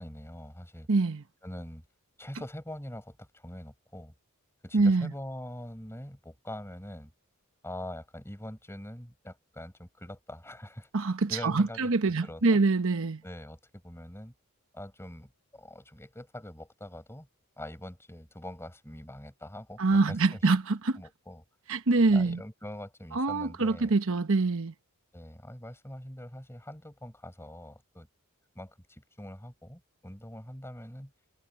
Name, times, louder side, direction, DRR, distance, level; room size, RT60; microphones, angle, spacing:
voice 1, 0.0-0.9 1.4-1.8 2.2-4.1 4.6-7.1 7.6-10.9 11.3-12.6 13.2-14.3 14.7-17.3 17.6-20.5 21.0-21.4 22.1-23.9 25.1-28.1 28.6-31.1, left 1 dB, 10° left, 5.1 m, -43 dB
voice 2, 0.9-1.2 4.7-5.1 10.9-13.2 19.8-21.0 21.7-22.4 23.1-24.7, right 3 dB, 65° right, 1.0 m, -25 dB
head